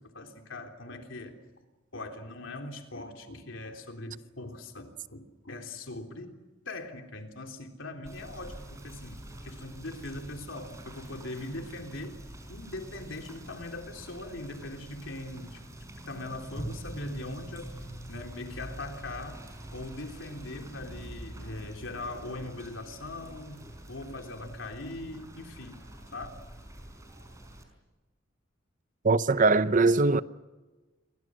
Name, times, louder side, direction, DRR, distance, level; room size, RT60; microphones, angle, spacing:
voice 1, 0.0-1.4 1.9-6.3 6.7-12.2 12.5-25.8 26.1-26.3, left 2 dB, 70° left, 3.6 m, -41 dB
Rain / Motor vehicle (road), 8.0-27.6, right 1 dB, 15° right, 4.9 m, -45 dB
voice 2, 29.0-30.2, right 3 dB, 40° right, 0.7 m, -21 dB
28.5 x 23.5 x 6.4 m
head